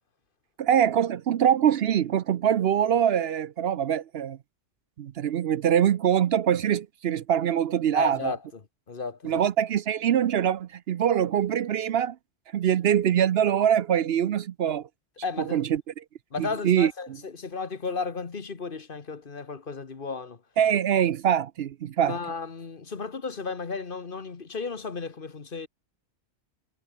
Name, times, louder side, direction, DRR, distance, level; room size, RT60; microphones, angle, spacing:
voice 1, 0.6-4.4 5.0-8.3 9.2-12.2 12.5-14.9 15.4-15.8 16.4-16.9 20.6-22.2, right 9 dB, 65° right, 0.8 m, -23 dB
voice 2, 7.9-8.4 8.9-9.4 15.2-15.6 16.3-20.4 22.1-25.7, left 4 dB, 50° left, 1.6 m, -34 dB
omnidirectional pair, 1.2 m